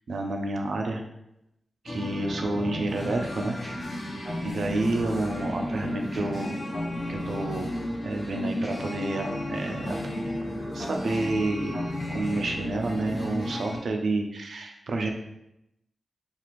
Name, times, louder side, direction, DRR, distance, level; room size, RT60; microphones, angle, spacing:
voice 1, 0.1-1.0 1.8-3.6 4.4-6.6 7.1-7.7 8.0-10.0 10.7-15.1, right 2 dB, 80° right, 3 dB, 0.3 m, -29 dB
sound 1, 1.9-13.8, left 1 dB, 55° left, 0.5 m, -34 dB
sound 2, 3.6-13.5, left 1 dB, ahead, 1.2 m, -39 dB
2.4 x 2.4 x 3.0 m, 0.83 s
wide cardioid pair, 90°, 0 cm